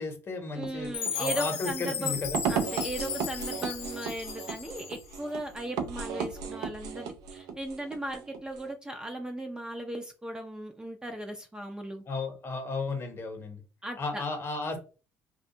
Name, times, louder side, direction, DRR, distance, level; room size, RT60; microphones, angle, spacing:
voice 1, 0.0-2.4 12.1-13.6 14.0-14.8, left 3 dB, 35° left, 0.8 m, -34 dB
voice 2, 0.5-2.1 2.5-12.0 13.8-14.2, right 1 dB, 10° right, 0.4 m, -37 dB
sound 1, 0.5-8.7, right 6 dB, 70° right, 0.4 m, -36 dB
Chime, 0.9-5.2, left 8 dB, 90° left, 0.3 m, -36 dB
2.4 x 2.2 x 2.7 m
hypercardioid pair, 60°, 7 cm